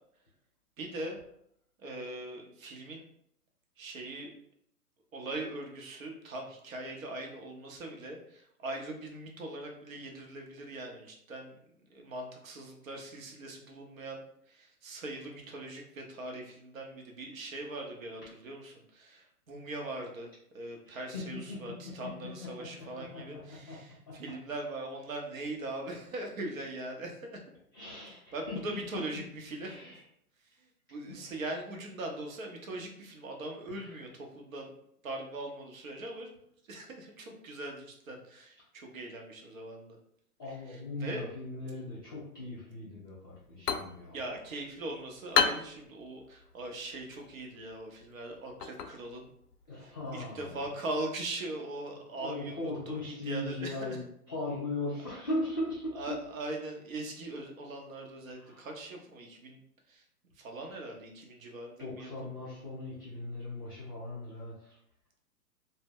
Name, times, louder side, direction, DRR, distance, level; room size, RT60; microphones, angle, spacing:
voice 1, 0.8-1.2 1.8-3.0 3.8-4.3 5.1-11.5 11.9-14.2 14.5-20.3 20.5-27.4 28.3-29.9 30.9-34.7 35.0-36.3 36.7-40.0 40.7-41.2 44.1-49.3 49.8-54.0 55.9-59.6 59.9-60.0 60.4-62.1, right 2 dB, 60° right, 2 dB, 0.8 m, -41 dB
voice 2, 20.9-23.8 24.1-24.2 27.7-28.6 29.6-30.0 31.0-31.4 33.7-34.1 40.4-44.2 49.7-50.6 52.1-56.2 58.4-58.7 61.8-64.8, left 2 dB, 15° left, -12 dB, 0.4 m, -39 dB
sound 1, 43.3-50.8, left 6 dB, 75° left, 0.5 m, -36 dB
2.1 x 2.1 x 3.5 m, 0.70 s
hypercardioid pair, 140°, 46 cm